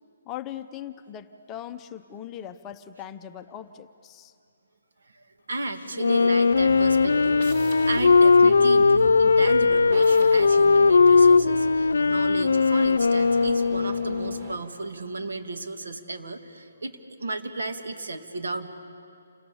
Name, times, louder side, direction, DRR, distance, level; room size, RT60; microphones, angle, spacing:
voice 1, 0.3-4.3, left 10 dB, 15° left, 8 dB, 0.6 m, -39 dB
voice 2, 5.1-7.4 7.9-18.7, right 2 dB, 90° right, 6 dB, 2.3 m, -33 dB
Wind instrument woodwind instrument, 5.9-14.5, left 4 dB, 90° left, 0.5 m, -19 dB
sound 1, 6.5-14.6, right 2 dB, 35° right, 4.0 m, -39 dB
29.0 x 25.0 x 7.1 m, 2.4 s
hypercardioid pair, 170°, 0 cm